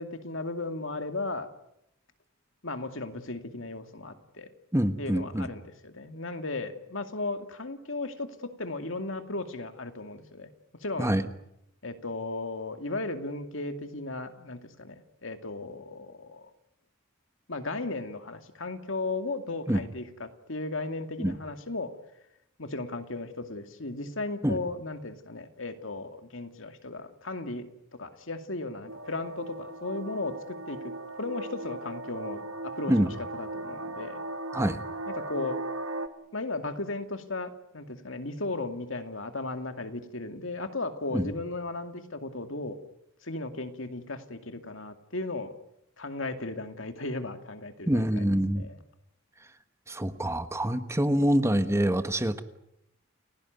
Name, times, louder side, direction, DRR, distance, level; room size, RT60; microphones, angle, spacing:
voice 1, 0.0-1.5 2.6-4.5 5.0-10.5 10.8-11.1 11.8-16.5 17.5-21.9 22.6-30.8 31.1-34.2 35.1-35.6 36.3-42.8 43.2-45.5 46.0-48.2 48.5-48.8, left 2 dB, 65° left, 7 dB, 2.5 m, -36 dB
voice 2, 4.7-5.5 11.0-11.2 19.7-19.8 21.2-21.4 24.4-24.6 32.9-33.1 34.5-34.8 41.1-41.3 47.9-48.7 49.9-52.4, right 1 dB, 15° right, 10 dB, 1.2 m, -26 dB
sound 1, 28.9-36.1, right 2 dB, 75° right, 1.8 m, -38 dB
30.0 x 17.0 x 9.5 m, 0.81 s
head